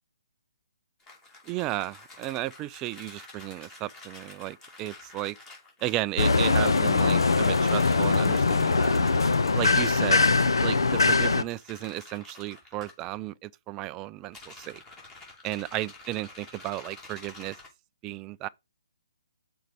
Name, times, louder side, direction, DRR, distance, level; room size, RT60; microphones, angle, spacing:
sound 1, 1.0-6.1 7.1-9.9 11.5-12.9 14.2-17.7, left 2 dB, 15° left, 2.8 m, -49 dB
voice 1, 1.5-5.4 5.8-9.0 9.5-10.2 10.6-14.8 15.4-17.6 18.0-18.5, right 16 dB, 20° right, 0.3 m, -34 dB
sound 2, 6.2-11.4, left 3 dB, 80° left, 0.8 m, -22 dB
6.6 x 4.6 x 5.0 m
hypercardioid pair, 145°, 2 cm